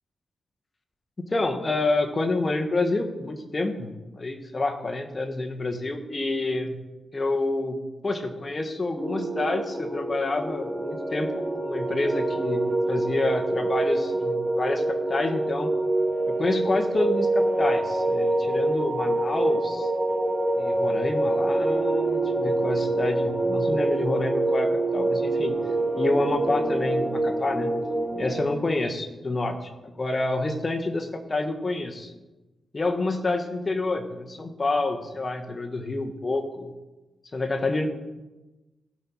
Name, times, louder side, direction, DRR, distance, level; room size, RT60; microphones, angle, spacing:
voice 1, 1.2-6.7 7.1-7.8 8.0-12.6 12.9-15.7 16.3-19.9 20.6-25.5 26.0-27.7 28.1-32.1 32.7-36.7 37.3-37.9, left 2 dB, 35° left, 5 dB, 1.4 m, -28 dB
sound 1, 9.0-28.4, right 2 dB, 10° right, 1.6 m, -26 dB
16.0 x 5.4 x 4.6 m, 1.1 s
cardioid pair, 75°, 0 cm